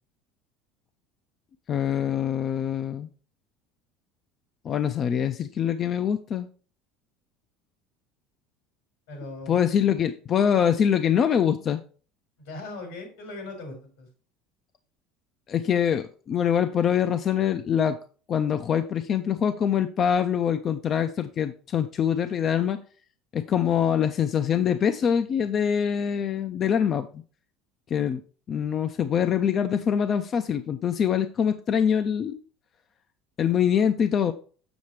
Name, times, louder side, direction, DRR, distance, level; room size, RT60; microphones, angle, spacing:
voice 1, 1.7-3.1 4.6-6.5 9.5-11.8 15.5-18.0 18.3-22.8 23.3-27.2 27.9-28.2 28.5-32.4 33.4-34.3, left 8 dB, 40° left, 9 dB, 0.5 m, -24 dB
voice 2, 9.1-9.8 12.4-14.1, left 2 dB, 85° left, 2 dB, 4.3 m, -39 dB
7.1 x 6.5 x 3.1 m, 0.39 s
supercardioid pair, 120°, 0 cm